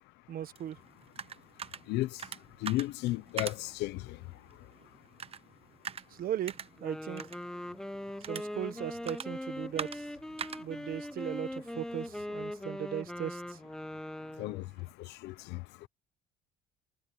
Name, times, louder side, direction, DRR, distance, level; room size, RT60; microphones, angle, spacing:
voice 1, 0.3-0.8 6.1-7.3 8.3-10.1 10.5-13.6, right 10 dB, 60° right, 1.2 m, -38 dB
sound 1, 0.6-12.2, right 7 dB, 35° right, 0.8 m, -45 dB
voice 2, 1.9-2.2 2.6-4.2 14.4-14.6 15.2-15.6, left 18 dB, 90° left, 0.9 m, -33 dB
Wind instrument woodwind instrument, 6.7-14.6, left 1 dB, 5° left, 0.9 m, -40 dB
cardioid pair, 110°, 17 cm